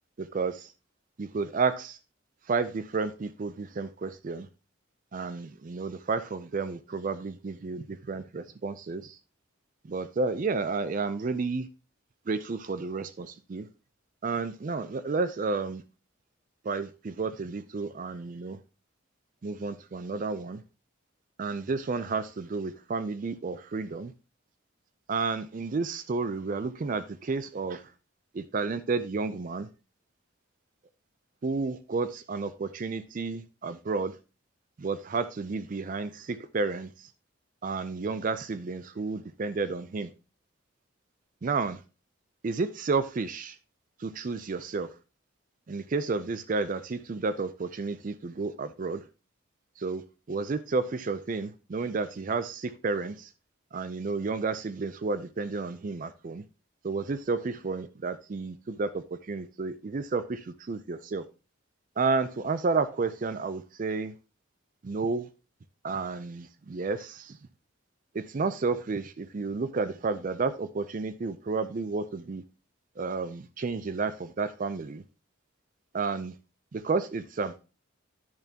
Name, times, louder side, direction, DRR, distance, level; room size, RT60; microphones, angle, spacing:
voice 1, 0.2-0.7 1.2-2.0 2.5-4.5 5.1-9.2 9.9-11.7 12.3-13.7 14.2-15.8 16.6-18.6 19.4-20.6 21.4-24.1 25.1-27.8 28.3-29.7 31.4-34.2 34.8-37.1 37.6-40.1 41.4-41.8 42.4-43.6 44.0-44.9 45.7-49.0 49.8-53.3 53.7-56.4 56.8-61.2 62.0-64.1 64.8-65.3 65.8-67.4 68.1-72.4 73.0-75.0 75.9-76.3 76.7-77.6, right 4 dB, 40° right, 0.4 m, -31 dB
10.5 x 6.9 x 2.8 m
head